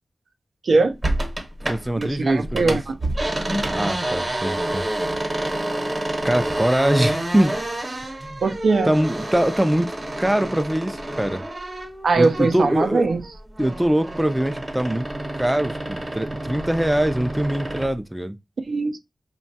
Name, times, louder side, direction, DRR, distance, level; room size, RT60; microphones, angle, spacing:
voice 1, 0.6-1.0 2.0-2.9 8.4-8.9 12.0-13.2 18.7-19.0, right 3 dB, 85° right, 0.4 m, -20 dB
sound 1, 1.0-2.1 2.4-12.8 13.1-17.9, right 1 dB, 35° right, 0.8 m, -28 dB
voice 2, 1.7-2.8 3.7-4.8 6.2-7.6 8.2-8.4 8.8-11.4 12.2-13.0 13.6-15.0 15.3-18.4, right 1 dB, 10° right, 0.3 m, -23 dB
2.9 x 2.2 x 2.7 m
wide cardioid pair, 60°, 0 cm